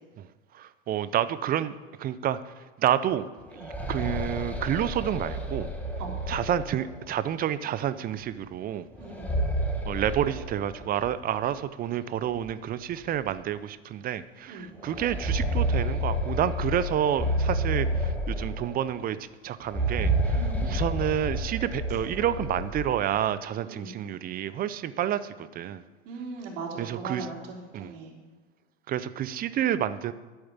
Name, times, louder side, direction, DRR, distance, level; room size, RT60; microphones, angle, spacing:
voice 1, 0.5-2.5 2.8-5.7 6.3-8.9 9.9-19.2 19.4-25.8 26.8-27.3 27.7-27.9 28.9-30.1, right 10 dB, 20° right, 15 dB, 0.5 m, -29 dB
sound 1, 3.4-7.2 9.0-11.2 11.5-11.6 12.4-12.5 13.0-13.2 14.8-19.0 19.6-23.0, right 1 dB, 5° left, 1.7 m, -30 dB
voice 2, 9.0-9.5 14.5-14.8 20.3-20.8 23.7-24.0 26.0-28.1, right 4 dB, 60° right, -2 dB, 3.4 m, -39 dB
11.5 x 7.9 x 7.2 m, 1.3 s
hypercardioid pair, 100°, 41 cm